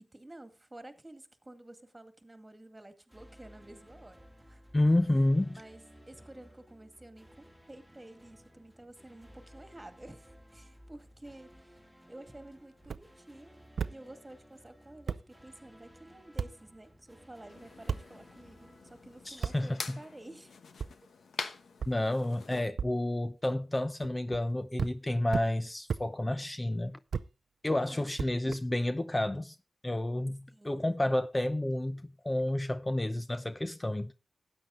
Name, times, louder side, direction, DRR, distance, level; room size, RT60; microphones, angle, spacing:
voice 1, 0.0-4.6 5.5-5.8 6.1-11.8 12.1-13.6 13.9-20.6 27.7-28.1 30.5-30.8, right 1 dB, 25° right, 2.0 m, -51 dB
sound 1, 3.1-20.1, equal, 10° left, 2.7 m, -57 dB
voice 2, 4.7-5.6 19.2-20.0 21.9-27.0 27.6-29.6 29.8-34.1, left 1 dB, 25° left, 0.7 m, -30 dB
sound 2, 12.8-13.0 13.8-13.9 14.7-14.8 15.1-15.2 16.4-16.5 17.9-18.0 19.4-19.6 20.8-20.9 21.8-21.9 22.8-22.9 24.0-24.4 24.8-24.9 25.3-25.5 25.9-26.0 27.1-27.3 28.2-28.9, right 6 dB, 85° right, 0.5 m, -34 dB
sound 3, 17.5-22.7, left 5 dB, 85° left, 1.1 m, -45 dB
13.0 x 8.9 x 3.8 m
cardioid pair, 45°, 0 cm